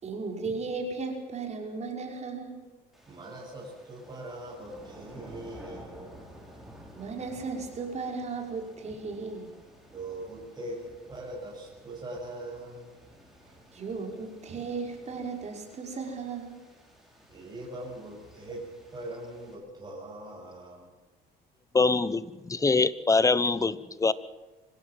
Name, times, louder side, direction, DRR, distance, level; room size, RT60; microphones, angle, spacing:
voice 1, 0.0-2.6 6.9-9.5 13.7-16.6, right 4 dB, 40° right, 2 dB, 5.7 m, -35 dB
sound 1, 2.9-19.5, right 1 dB, ahead, 6.8 m, -52 dB
voice 2, 3.1-6.1 9.9-12.9 17.3-18.6 18.9-20.9, right 1 dB, 25° right, -4 dB, 7.9 m, -41 dB
voice 3, 21.7-24.1, left 3 dB, 20° left, 17 dB, 1.0 m, -24 dB
25.5 x 16.0 x 7.7 m, 1.2 s
cardioid pair, 110°, 17 cm